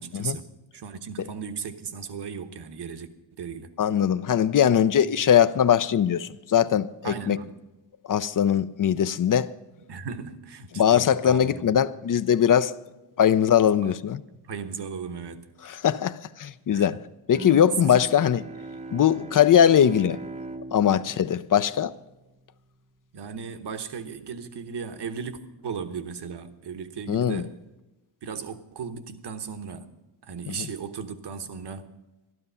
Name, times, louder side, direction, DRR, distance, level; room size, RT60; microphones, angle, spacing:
voice 1, 0.0-3.1 3.4-3.7 7.0-7.5 9.9-11.8 13.8-13.9 14.5-15.5 16.7-16.9 17.9-18.0 23.1-27.5 28.2-29.9 30.2-31.9, right 6 dB, 60° right, 1.2 m, -36 dB
voice 2, 3.8-7.4 8.0-9.5 10.8-12.7 13.2-14.2 15.7-17.0 17.3-18.4 18.9-20.2 20.7-21.9 27.1-27.4 30.5-30.7, left 9 dB, 45° left, 0.6 m, -21 dB
Bowed string instrument, 17.3-22.4, right 1 dB, 15° right, 0.8 m, -39 dB
12.5 x 12.0 x 5.6 m
cardioid pair, 85°, 47 cm